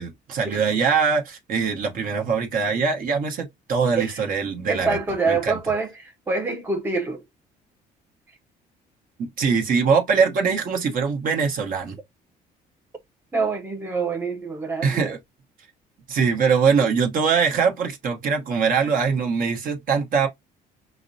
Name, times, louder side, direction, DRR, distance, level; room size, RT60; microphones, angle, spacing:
voice 1, 0.0-5.0 5.2-5.6 9.2-12.0 14.8-15.2 16.1-20.3, right 5 dB, 55° right, 1.0 m, -22 dB
voice 2, 4.0-4.3 4.7-7.2 13.3-15.1, right 4 dB, 15° right, 0.5 m, -26 dB
5.9 x 2.1 x 2.6 m
cardioid pair, 110°, 17 cm